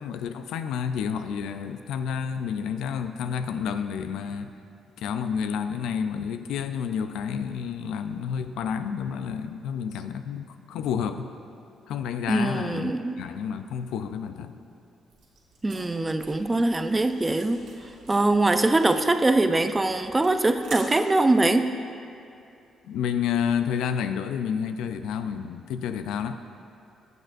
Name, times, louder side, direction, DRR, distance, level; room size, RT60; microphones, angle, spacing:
voice 1, 0.0-4.5 5.0-11.3 11.9-14.6 22.8-26.4, left 7 dB, 85° left, 9 dB, 0.4 m, -30 dB
voice 2, 12.3-13.2 15.6-17.6 18.1-21.7, right 2 dB, 20° right, 8 dB, 0.5 m, -22 dB
sound 1, 15.1-20.8, right 4 dB, 80° right, 1.6 m, -48 dB
16.0 x 6.6 x 2.5 m, 2.6 s
cardioid pair, 90°, 0 cm